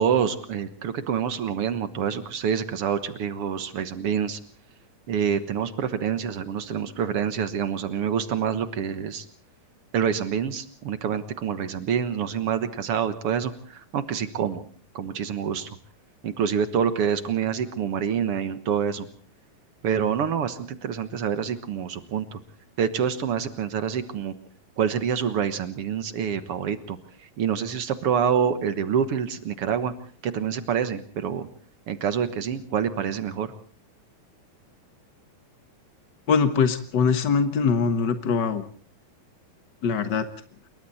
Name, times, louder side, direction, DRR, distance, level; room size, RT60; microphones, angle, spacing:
voice 1, 0.0-4.4 5.1-9.2 9.9-14.6 14.9-15.7 16.2-19.1 19.8-22.4 22.8-24.3 24.8-29.9 30.2-31.5 31.9-33.5, right 7 dB, 60° right, 11 dB, 1.6 m, -27 dB
voice 2, 36.3-38.6 39.8-40.3, left 5 dB, 80° left, 10 dB, 0.9 m, -22 dB
27.0 x 23.0 x 4.2 m, 0.43 s
omnidirectional pair, 4.1 m